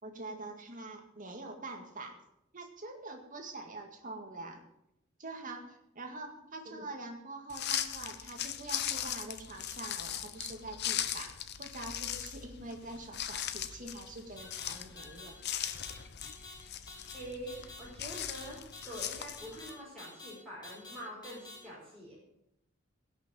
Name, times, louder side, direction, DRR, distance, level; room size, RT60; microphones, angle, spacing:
voice 1, 0.0-2.2 2.5-4.6 5.2-15.4, right 2 dB, 40° right, 4 dB, 2.1 m, -45 dB
sound 1, 7.5-19.7, left 10 dB, 55° left, 0.9 m, -39 dB
sound 2, 14.4-14.7 15.0-15.3 15.6-15.9 16.2-16.5 16.9-17.2 17.5-17.8 18.1-18.4 18.7-19.0 19.4-19.7 20.0-20.3 20.6-21.0 21.2-21.6, left 3 dB, 20° left, 4.6 m, -48 dB
voice 2, 17.1-18.6 18.8-22.2, equal, 5° left, -8 dB, 4.5 m, -45 dB
16.5 x 6.5 x 7.8 m, 0.82 s
head